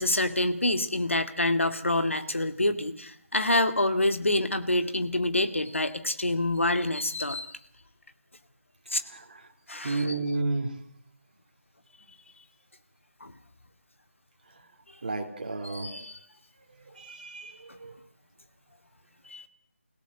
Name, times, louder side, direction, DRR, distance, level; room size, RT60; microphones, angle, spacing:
voice 1, 0.0-7.6 8.9-9.0 9.7-10.1 13.2-13.3 15.6-16.2 19.3-19.5, left 1 dB, 65° left, 8 dB, 2.3 m, -27 dB
voice 2, 9.0-9.5 9.8-10.8 15.0-16.0 16.7-17.9, right 3 dB, 35° right, 5 dB, 2.9 m, -32 dB
25.0 x 17.0 x 8.1 m, 0.68 s
figure-of-eight pair, 160°, 7 cm